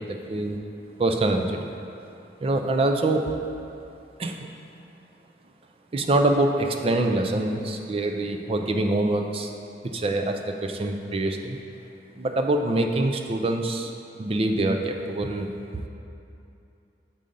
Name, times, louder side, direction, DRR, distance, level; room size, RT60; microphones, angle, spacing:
voice 1, 0.1-0.6 1.0-1.8 2.4-3.3 4.2-4.5 5.9-9.5 9.8-11.6 12.2-13.9 14.2-15.9, right 2 dB, 30° right, 4 dB, 0.4 m, -25 dB
6.8 x 3.8 x 5.3 m, 2.7 s
head